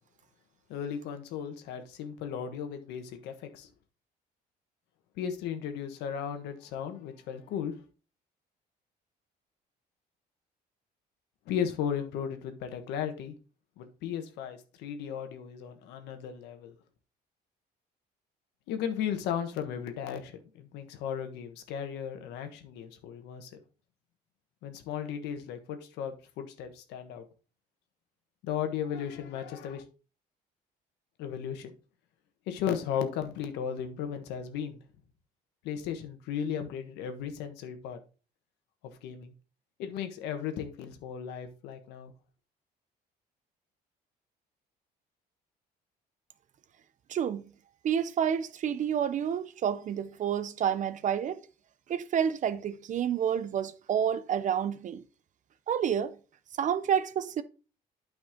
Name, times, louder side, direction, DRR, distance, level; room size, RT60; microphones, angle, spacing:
voice 1, 0.7-3.7 5.2-7.8 11.5-13.3 13.8-16.7 18.7-23.5 24.6-27.2 28.4-29.8 31.2-31.7 32.5-34.8 35.6-38.0 39.0-39.3 39.8-42.1, left 8 dB, 90° left, 1.4 m, -35 dB
voice 2, 47.1-47.4 47.8-51.4 51.9-55.0 55.7-56.1 56.6-57.4, right 8 dB, 50° right, 0.7 m, -29 dB
9.3 x 5.3 x 3.7 m
cardioid pair, 110°, 17 cm